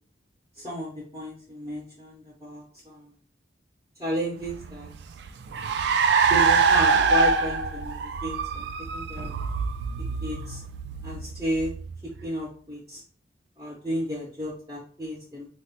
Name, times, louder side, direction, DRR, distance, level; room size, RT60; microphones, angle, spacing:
voice 1, 0.6-2.1 2.4-3.0 4.0-4.9 6.3-8.6 8.9-9.4 10.2-10.6 11.0-11.7 12.2-13.0 13.6-15.5, equal, 20° right, -4 dB, 0.6 m, -32 dB
Car, 4.5-12.2, right 5 dB, 65° right, 0.3 m, -25 dB
4.1 x 2.1 x 2.8 m, 0.43 s
head